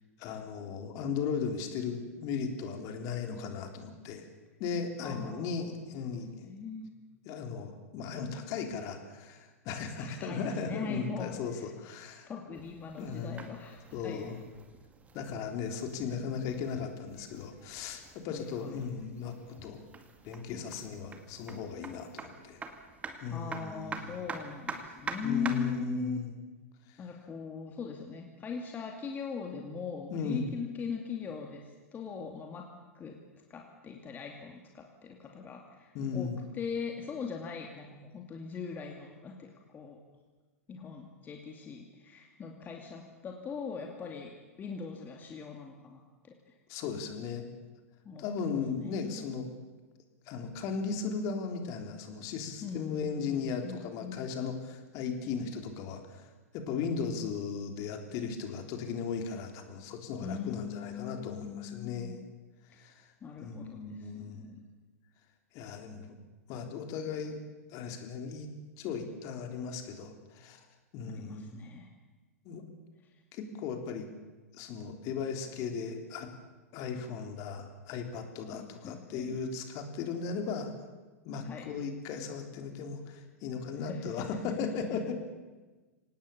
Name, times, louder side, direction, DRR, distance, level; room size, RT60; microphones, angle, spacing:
voice 1, 0.2-4.2 4.6-6.3 7.2-12.3 13.0-13.4 13.9-14.4 15.1-19.4 19.6-19.8 20.2-22.6 23.2-24.0 25.2-26.3 30.1-30.5 35.9-36.4 46.7-47.4 48.2-49.4 50.3-56.3 56.5-62.2 62.8-62.9 63.4-64.5 65.5-66.1 66.5-67.4 67.7-68.5 68.8-70.6 70.9-71.6 72.4-72.6 73.3-74.1 74.5-76.3 76.7-80.7 81.2-85.1, left 5 dB, 40° left, 5 dB, 3.5 m, -37 dB
voice 2, 5.0-5.8 6.4-7.0 10.0-11.7 12.3-14.3 18.3-18.9 23.3-26.2 27.0-32.7 32.9-33.2 33.5-40.0 40.7-46.3 48.0-48.2 48.7-49.4 52.6-54.3 60.2-62.2 63.2-64.7 71.1-71.9 78.5-79.4 81.4-81.7 83.8-84.3, left 5 dB, 20° left, 2 dB, 2.5 m, -40 dB
sound 1, 12.5-25.8, right 4 dB, 15° right, 2.2 m, -46 dB
25.5 x 18.5 x 7.1 m, 1.3 s
figure-of-eight pair, 105°, 8 cm